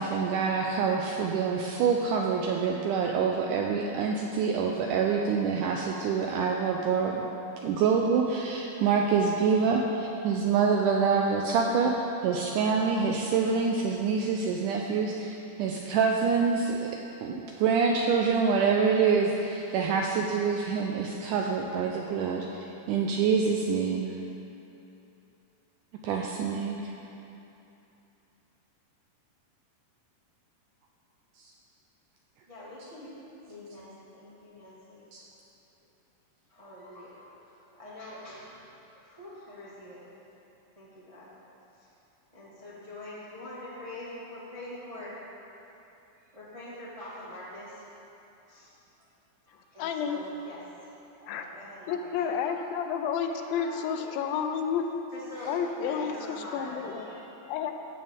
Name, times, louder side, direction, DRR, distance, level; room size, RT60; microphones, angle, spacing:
voice 1, 0.0-7.2 7.6-11.9 12.2-16.9 17.2-22.5 22.9-24.1 26.0-26.8 35.1-35.2, right 5 dB, 85° right, 1 dB, 1.8 m, -26 dB
voice 2, 32.5-33.1 33.4-35.0 36.5-38.6 39.0-40.0 40.7-41.3 42.3-45.1 46.3-47.8 48.5-48.7 49.5-50.6 51.2-52.7 53.3-54.3 55.1-55.5 55.8-57.2, left 1 dB, 30° right, -9 dB, 0.5 m, -44 dB
voice 3, 49.8-50.3 51.3-51.5 51.9-54.9 55.5-57.1 57.5-57.7, left 7 dB, 85° left, 6 dB, 2.4 m, -30 dB
15.5 x 6.9 x 3.6 m, 2.9 s
omnidirectional pair, 4.1 m